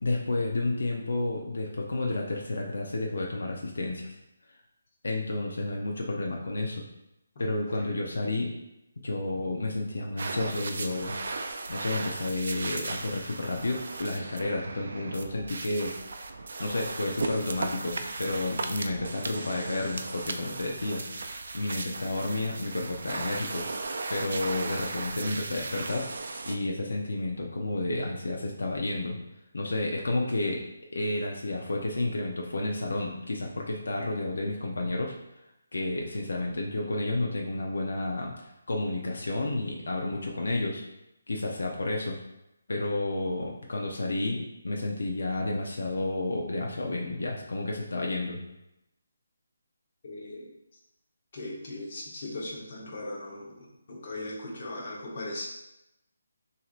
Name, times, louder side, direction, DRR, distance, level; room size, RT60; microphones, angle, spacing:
voice 1, 0.0-4.1 5.0-6.8 7.4-8.5 9.0-11.2 11.7-15.9 16.6-21.0 21.5-23.6 24.1-26.1 26.4-29.2 29.5-30.6 30.9-35.1 35.7-40.8 41.3-42.2 42.7-48.4, left 2 dB, 75° left, 0 dB, 0.7 m, -31 dB
sound 1, 10.2-26.6, right 3 dB, 50° right, 0.4 m, -36 dB
voice 2, 50.0-50.5 51.3-55.5, left 2 dB, 35° left, -3 dB, 1.0 m, -38 dB
6.1 x 2.9 x 2.5 m, 0.89 s
hypercardioid pair, 175°, 0 cm